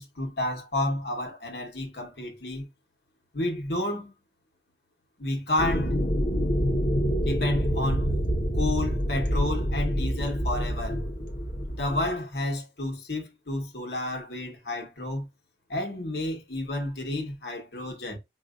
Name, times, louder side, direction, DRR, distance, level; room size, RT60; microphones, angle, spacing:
voice 1, 0.0-2.7 3.3-4.1 5.2-6.0 7.2-8.1 8.5-11.0 11.8-15.3 15.7-18.2, left 1 dB, 65° left, 1.3 m, -31 dB
sound 1, 5.6-12.1, equal, 45° left, 1.1 m, -27 dB
4.8 x 2.7 x 2.5 m
head